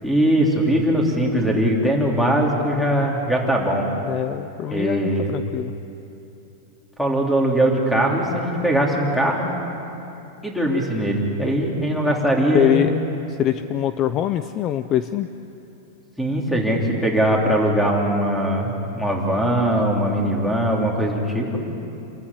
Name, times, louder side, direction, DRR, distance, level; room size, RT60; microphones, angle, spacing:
voice 1, 0.0-3.9 4.7-5.3 7.0-9.5 10.4-12.9 16.2-21.6, right 1 dB, 5° left, -1 dB, 3.3 m, -21 dB
voice 2, 4.0-5.7 12.5-13.0 13.4-15.3, left 11 dB, 30° left, 11 dB, 0.6 m, -23 dB
27.0 x 14.5 x 9.9 m, 2.9 s
supercardioid pair, 150°, 0 cm